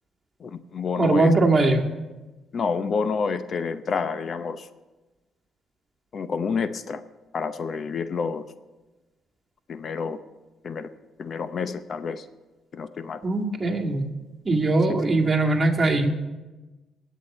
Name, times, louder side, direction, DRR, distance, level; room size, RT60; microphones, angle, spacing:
voice 1, 0.4-1.3 2.5-4.7 6.1-7.0 7.3-8.5 9.7-10.2 10.6-10.9 11.2-12.2 12.7-13.2, left 5 dB, 50° left, 12 dB, 0.7 m, -28 dB
voice 2, 1.0-1.9 13.2-14.1 14.5-16.1, right 2 dB, 25° right, 0 dB, 2.0 m, -21 dB
21.0 x 8.3 x 4.3 m, 1.2 s
cardioid pair, 90°, 0 cm